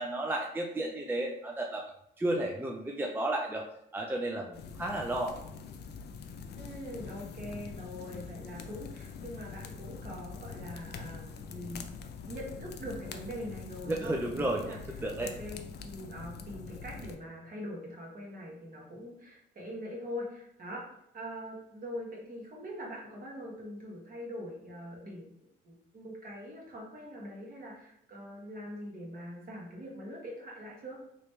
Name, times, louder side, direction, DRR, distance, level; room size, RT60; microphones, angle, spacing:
voice 1, 0.0-1.8 2.2-3.6 3.9-5.3 13.9-14.6 15.0-15.3, right 1 dB, 10° right, 0 dB, 0.4 m, -32 dB
sound 1, 4.5-17.2, left 5 dB, 55° left, 0.4 m, -44 dB
voice 2, 6.6-11.9 12.3-20.9 21.1-25.3 25.6-31.0, equal, 45° right, -3 dB, 1.4 m, -43 dB
3.2 x 3.0 x 3.1 m, 0.76 s
cardioid pair, 90°, 20 cm